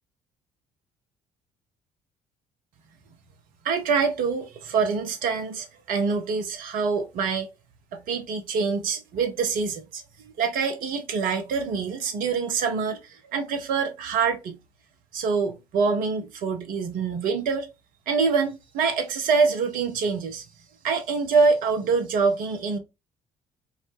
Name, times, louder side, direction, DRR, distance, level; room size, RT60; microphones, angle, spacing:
voice 1, 3.6-7.5 7.9-14.6 15.1-17.7 18.1-20.4 20.8-22.8, right 5 dB, 50° right, 0.7 m, -25 dB
2.2 x 2.0 x 3.2 m
figure-of-eight pair, 50°, 18 cm